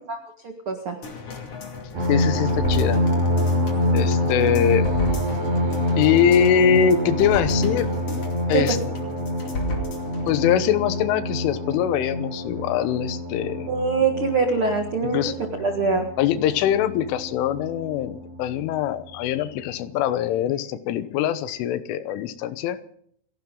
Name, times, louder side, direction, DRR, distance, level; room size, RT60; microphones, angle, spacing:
voice 1, 0.4-1.0 8.5-8.6 13.7-15.2 15.6-16.1, right 4 dB, 80° right, 3 dB, 1.2 m, -23 dB
sound 1, 1.0-10.5 10.8-10.9, left 1 dB, 40° left, 2.8 m, -34 dB
sound 2, 1.9-18.9 19.6-19.7 20.1-20.4, left 1 dB, 65° right, 6.4 m, -26 dB
voice 2, 2.1-3.0 3.9-4.8 6.0-7.9 8.5-8.8 10.3-13.7 15.0-15.4 16.2-22.8, left 9 dB, 90° left, 12 dB, 3.6 m, -22 dB
29.0 x 11.5 x 3.9 m, 0.63 s
omnidirectional pair, 5.5 m